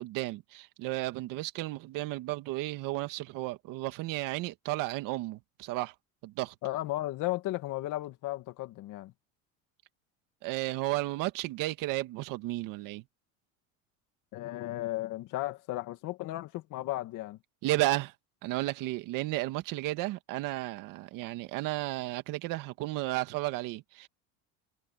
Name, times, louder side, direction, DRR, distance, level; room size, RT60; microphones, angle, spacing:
voice 1, 0.0-5.9 6.2-6.5 10.4-13.0 17.6-18.1 18.4-24.1, right 18 dB, 65° right, 2.0 m, -33 dB
voice 2, 6.6-9.1 14.3-17.4, left 16 dB, 60° left, 2.3 m, -35 dB
cardioid pair, 135°, 35 cm